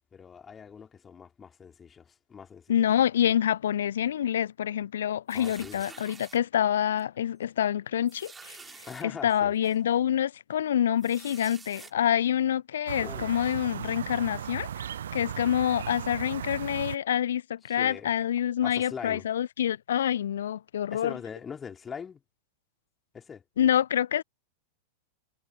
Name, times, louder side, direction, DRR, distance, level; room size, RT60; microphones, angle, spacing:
voice 1, 0.1-2.7 5.3-5.8 8.9-9.6 13.0-13.3 17.7-18.1 18.6-19.3 20.9-22.2 23.1-23.4, left 6 dB, 20° left, 3.3 m, -42 dB
voice 2, 2.7-8.6 9.2-14.7 15.1-21.1 23.6-24.2, left 10 dB, 65° left, 0.5 m, -27 dB
sound 1, 5.3-6.4 7.0-7.2 7.4-7.5 8.1-9.0 9.6-9.8 11.0-11.9, right 4 dB, 15° right, 4.1 m, -48 dB
sound 2, 12.9-16.9, right 9 dB, 65° right, 1.0 m, -36 dB
figure-of-eight pair, 90°, 0 cm